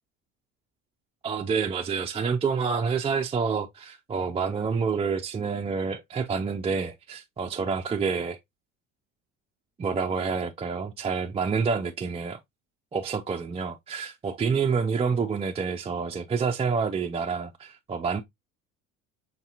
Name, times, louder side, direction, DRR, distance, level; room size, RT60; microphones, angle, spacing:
voice 1, 1.2-8.4 9.8-12.4 12.9-18.2, right 5 dB, 15° right, 0.4 m, -28 dB
5.8 x 2.8 x 2.3 m
supercardioid pair, 80°, 35 cm